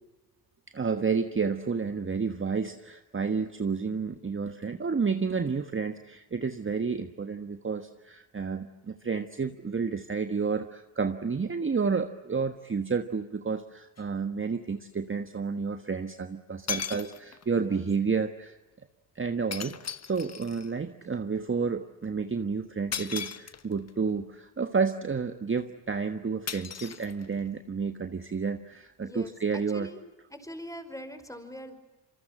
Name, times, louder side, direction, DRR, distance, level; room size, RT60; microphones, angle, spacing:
voice 1, 0.7-18.6 19.1-29.9, right 5 dB, 25° right, 8 dB, 1.4 m, -30 dB
sound 1, 14.0-14.1 16.1-16.2 16.7-17.5 19.5-20.7 22.9-23.9 26.5-27.6, left 7 dB, 30° left, 1.1 m, -37 dB
voice 2, 29.0-30.0 30.3-31.7, equal, 5° left, 9 dB, 5.1 m, -42 dB
27.0 x 24.0 x 7.6 m, 1.1 s
hypercardioid pair, 60°, 50 cm